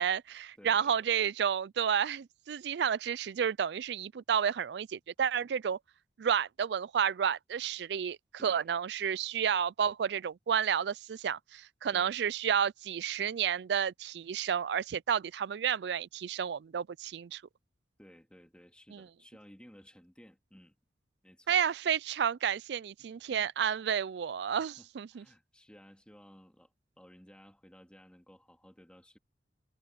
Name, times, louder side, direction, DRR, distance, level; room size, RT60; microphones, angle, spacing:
voice 1, 0.0-5.8 6.2-17.4 18.9-19.0 21.5-25.2, right 8 dB, 65° right, 0.4 m, -31 dB
voice 2, 0.6-1.1 8.4-8.7 11.9-12.2 18.0-20.8 21.2-21.6 23.0-23.5 24.6-26.7 27.0-29.2, equal, 5° left, 2.5 m, -57 dB
head